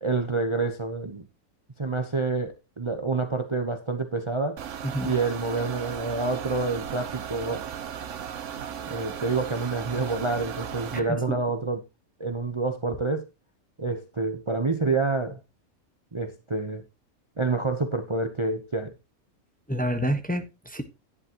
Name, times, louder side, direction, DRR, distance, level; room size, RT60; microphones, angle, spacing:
voice 1, 0.0-1.3 1.8-4.6 5.0-7.6 8.9-11.8 12.2-13.3 13.8-15.4 16.1-16.8 17.4-18.9, right 3 dB, 25° right, 0.9 m, -28 dB
sound 1, 4.6-11.0, right 8 dB, 60° right, 1.1 m, -36 dB
voice 2, 10.9-11.4 19.7-20.8, equal, 5° left, 1.1 m, -28 dB
11.0 x 10.5 x 3.0 m
omnidirectional pair, 1.5 m